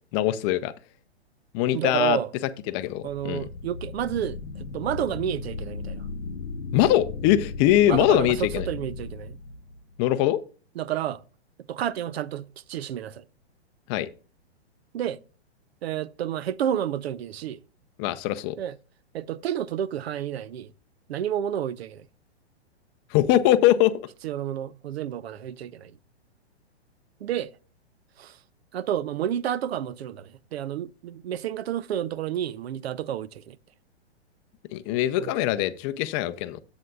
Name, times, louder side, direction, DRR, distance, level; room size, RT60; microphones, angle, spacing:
voice 1, 0.1-0.7 1.5-2.2 2.7-3.4 6.7-8.6 10.0-10.4 13.9-14.1 18.0-18.5 23.1-23.9 34.7-36.6, left 13 dB, 25° left, 0.5 m, -22 dB
voice 2, 1.7-2.3 3.0-6.0 7.9-9.4 10.8-11.2 11.7-13.2 14.9-15.2 15.8-17.6 18.6-18.7 19.1-20.7 21.1-22.0 24.2-25.9 27.2-27.6 28.2-28.4 28.7-33.6 35.2-35.3, right 10 dB, 65° right, 0.5 m, -30 dB
sound 1, 3.0-10.0, left 4 dB, 80° left, 0.9 m, -36 dB
10.5 x 8.0 x 2.3 m
hypercardioid pair, 130°, 33 cm